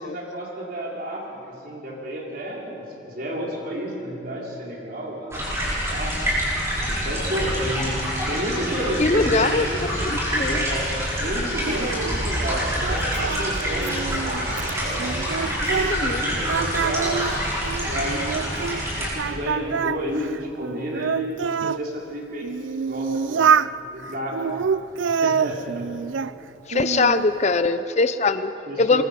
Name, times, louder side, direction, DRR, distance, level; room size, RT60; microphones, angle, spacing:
voice 1, 0.0-6.2 6.9-7.9 8.3-9.8 10.4-14.4 14.7-17.2 17.8-18.6 19.0-22.5 22.8-23.5 23.9-24.7 25.1-25.9 28.7-29.0, equal, 50° right, -2 dB, 4.1 m, -31 dB
sound 1, 5.3-19.1, equal, 15° right, 6.4 m, -26 dB
voice 2, 9.0-10.6 15.9-16.4 26.7-28.5 28.8-29.0, left 3 dB, 35° left, 12 dB, 0.5 m, -22 dB
Singing, 11.7-16.2 16.5-18.8 19.2-21.8 22.4-23.7 24.3-26.3 26.7-27.3, right 6 dB, 75° right, 0.4 m, -26 dB
24.5 x 22.5 x 5.3 m, 3.0 s
head